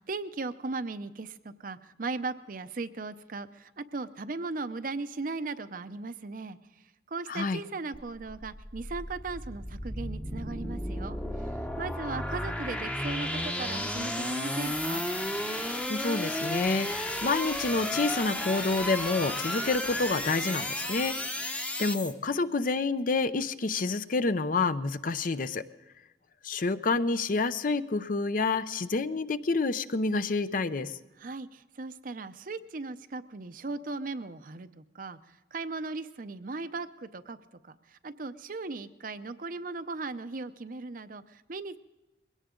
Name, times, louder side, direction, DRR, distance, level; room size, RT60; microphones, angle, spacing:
voice 1, 0.0-15.0 31.2-37.4 37.6-41.8, right 3 dB, 50° right, 11 dB, 0.6 m, -38 dB
sound 1, 7.9-22.1, left 1 dB, 5° left, 0.8 m, -33 dB
voice 2, 15.9-21.2 21.8-25.6 26.4-31.0, left 3 dB, 50° left, 12 dB, 0.6 m, -28 dB
21.5 x 17.5 x 3.8 m, 1.1 s
head